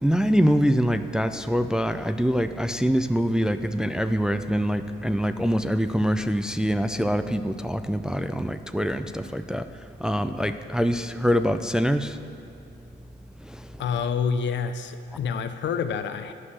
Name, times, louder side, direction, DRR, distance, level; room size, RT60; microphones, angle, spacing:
voice 1, 0.0-9.6 10.0-12.2 13.4-13.6, equal, 5° right, 9 dB, 0.4 m, -24 dB
voice 2, 13.8-16.3, left 6 dB, 65° left, 10 dB, 0.6 m, -27 dB
9.7 x 6.2 x 7.6 m, 2.6 s
cardioid pair, 90°, 20 cm